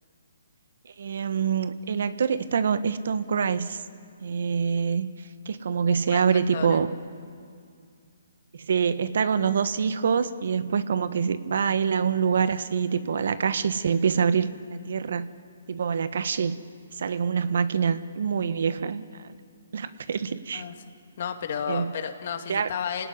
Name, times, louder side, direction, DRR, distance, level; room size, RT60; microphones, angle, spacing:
voice 1, 0.8-3.8 4.2-5.1 5.4-6.9 8.7-15.3 15.7-16.6 17.0-19.3 19.7-20.6 21.7-21.9 22.5-22.7, right 6 dB, 65° right, 13 dB, 1.3 m, -25 dB
voice 2, 6.1-6.8 20.5-20.7 21.2-23.1, left 7 dB, 50° left, 6 dB, 2.5 m, -32 dB
27.5 x 18.0 x 10.0 m, 2.2 s
hypercardioid pair, 150°, 0 cm